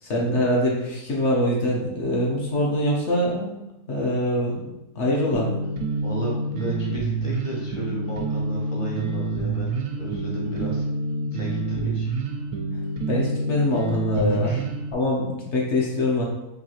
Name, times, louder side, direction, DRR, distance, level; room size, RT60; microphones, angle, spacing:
voice 1, 0.0-3.6 3.9-5.5 13.1-14.6 14.9-16.2, left 1 dB, 55° left, -3 dB, 0.9 m, -24 dB
sound 1, 5.3-14.9, right 3 dB, 70° right, 0.9 m, -27 dB
voice 2, 6.0-10.9 11.3-12.1 14.3-14.7, right 1 dB, 30° left, -4 dB, 0.6 m, -33 dB
3.9 x 2.8 x 2.9 m, 0.93 s
omnidirectional pair, 1.6 m